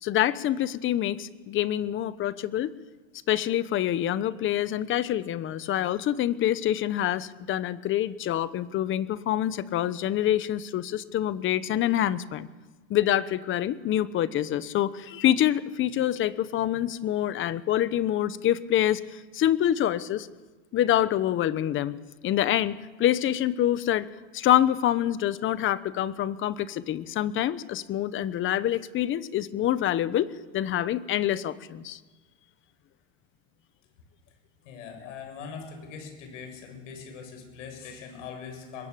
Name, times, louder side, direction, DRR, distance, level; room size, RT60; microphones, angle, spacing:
voice 1, 0.0-2.7 3.3-12.5 12.9-20.3 20.7-22.0 22.2-24.1 24.3-32.0, left 12 dB, 35° left, 15 dB, 1.1 m, -26 dB
voice 2, 34.6-38.9, left 6 dB, 80° left, 5 dB, 7.9 m, -41 dB
23.0 x 21.5 x 8.5 m, 1.3 s
supercardioid pair, 135°, 37 cm